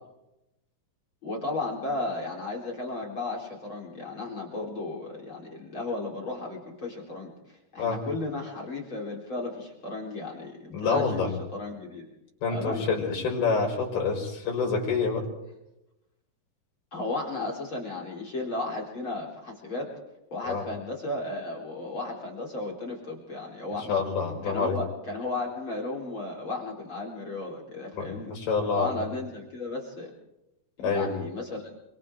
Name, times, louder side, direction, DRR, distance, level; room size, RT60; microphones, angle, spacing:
voice 1, 1.2-12.1 12.5-12.9 16.9-19.9 20.3-24.0 24.4-28.3 28.7-30.1 30.8-31.7, left 2 dB, 35° left, 1 dB, 4.5 m, -34 dB
voice 2, 10.7-11.3 12.4-15.3 20.4-20.6 23.9-24.8 27.9-29.0 30.8-31.1, left 4 dB, 90° left, 0 dB, 7.1 m, -27 dB
30.0 x 24.0 x 3.7 m, 0.90 s
omnidirectional pair, 4.3 m